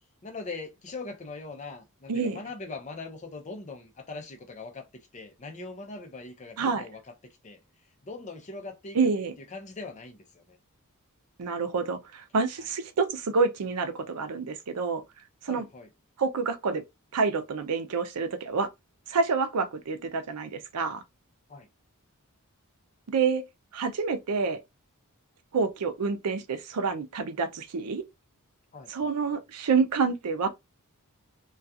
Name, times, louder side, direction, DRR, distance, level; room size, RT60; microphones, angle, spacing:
voice 1, 0.2-4.9 5.1-7.1 7.4-7.6 8.0-10.6 12.6-12.7 15.5-15.9 21.5-21.7 28.7-29.1, left 3 dB, 30° left, 0.5 m, -41 dB
voice 2, 2.1-2.4 6.6-6.8 8.9-9.3 11.4-15.0 15.4-15.6 16.2-16.8 17.1-18.7 19.1-21.0 23.1-23.4 23.7-24.6 25.5-28.0 28.9-30.5, right 4 dB, 85° right, 0.5 m, -28 dB
2.3 x 2.3 x 2.6 m
head